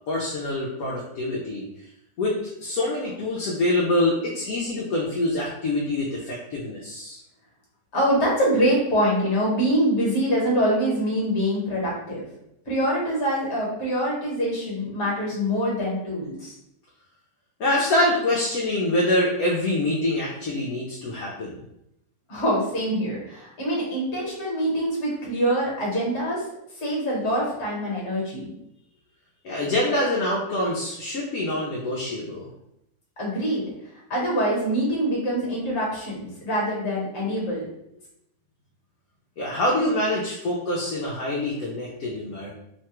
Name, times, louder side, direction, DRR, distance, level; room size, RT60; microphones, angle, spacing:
voice 1, 0.1-1.7 2.2-7.2 17.6-21.6 29.4-32.5 39.4-42.5, left 1 dB, 70° left, -3 dB, 0.9 m, -25 dB
voice 2, 7.9-12.2 12.6-16.5 22.3-26.4 26.8-28.5 33.2-33.6 34.1-37.7, equal, 45° left, -4 dB, 1.2 m, -24 dB
3.1 x 2.2 x 2.9 m, 0.81 s
omnidirectional pair, 1.9 m